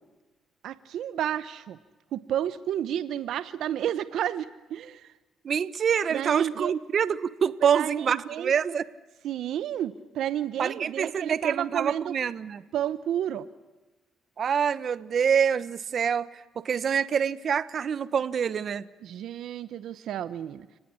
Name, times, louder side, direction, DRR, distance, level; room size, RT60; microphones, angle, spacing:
voice 1, 0.6-1.8 2.1-5.1 6.1-6.7 7.6-8.5 9.2-12.2 12.7-13.5 19.0-20.7, right 10 dB, 75° right, 15 dB, 0.9 m, -31 dB
voice 2, 5.4-8.9 10.6-12.6 14.4-16.3 16.6-18.8, right 7 dB, 55° right, 16 dB, 1.1 m, -26 dB
30.0 x 19.0 x 9.9 m, 1.2 s
cardioid pair, 90°, 0 cm